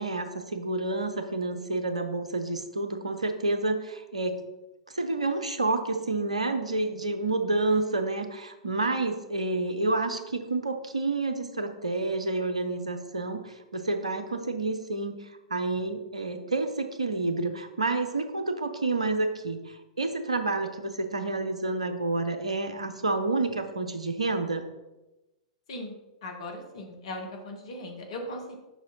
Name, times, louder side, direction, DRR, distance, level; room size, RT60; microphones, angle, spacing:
voice 1, 0.0-4.4 4.9-15.2 15.5-24.6, right 2 dB, 75° right, 8 dB, 0.8 m, -29 dB
voice 2, 26.2-28.6, left 1 dB, 55° left, 3 dB, 1.5 m, -38 dB
7.1 x 5.3 x 4.1 m, 1.0 s
figure-of-eight pair, 100°, 3 cm